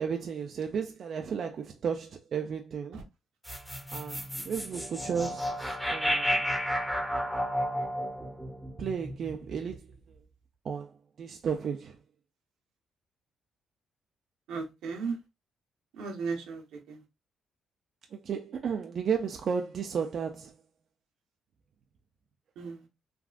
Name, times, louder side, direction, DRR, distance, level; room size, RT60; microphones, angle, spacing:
voice 1, 0.0-3.0 3.9-4.2 4.5-6.5 8.8-9.9 10.6-12.0 18.1-20.5, right 6 dB, 55° right, 0.4 m, -33 dB
sound 1, 3.4-9.8, equal, 5° left, 0.9 m, -32 dB
voice 2, 14.5-15.2 15.9-17.0 22.6-22.9, right 4 dB, 85° right, 0.9 m, -36 dB
3.5 x 2.3 x 2.4 m
cardioid pair, 90°, 0 cm